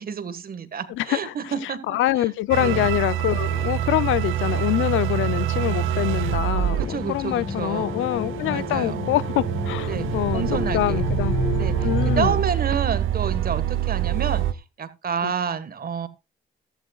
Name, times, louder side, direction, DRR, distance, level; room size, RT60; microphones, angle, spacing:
voice 1, 0.0-2.0 2.6-2.9 6.8-8.0 8.5-9.0 9.9-10.1 10.3-11.0 11.5-14.4 14.8-16.1, right 6 dB, 50° right, 1.6 m, -29 dB
voice 2, 0.9-11.4 11.8-12.4 15.2-15.3, left 15 dB, 80° left, 0.5 m, -25 dB
sound 1, 2.5-14.5, right 12 dB, 85° right, 0.9 m, -26 dB
sound 2, 3.1-12.3, left 4 dB, 35° left, 1.9 m, -32 dB
15.0 x 12.0 x 2.4 m
cardioid pair, 90°, 20 cm